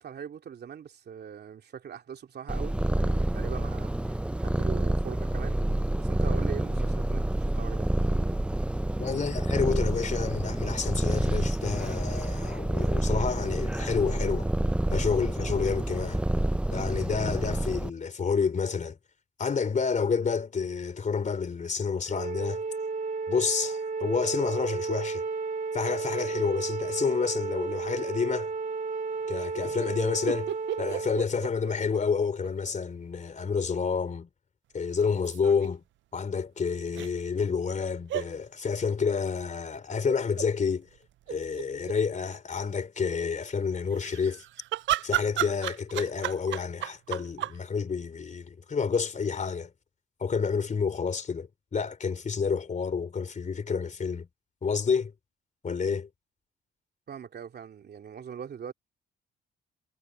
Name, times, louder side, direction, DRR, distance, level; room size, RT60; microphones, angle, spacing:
voice 1, 0.0-5.6 6.0-7.9 57.1-58.7, right 8 dB, 55° right, 2.9 m, -41 dB
Purr, 2.5-17.9, right 1 dB, 5° right, 0.4 m, -28 dB
voice 2, 9.0-14.5 14.9-16.2 16.7-19.0 19.4-22.6 23.3-25.3 25.7-28.5 29.3-34.3 34.7-35.8 36.1-40.9 41.3-44.4 45.0-49.7 50.2-54.3 54.6-55.1 55.6-56.1, left 5 dB, 40° left, 3.5 m, -29 dB
Wind instrument woodwind instrument, 22.1-31.2, right 4 dB, 40° right, 2.1 m, -33 dB
sound 1, 30.3-32.5 32.8-32.9 35.0-35.7 36.9-37.1 38.1-38.3 40.1-40.5 41.0-41.1 41.2-42.0 43.9-47.6, right 14 dB, 70° right, 0.5 m, -33 dB
cardioid pair, 90°, 20 cm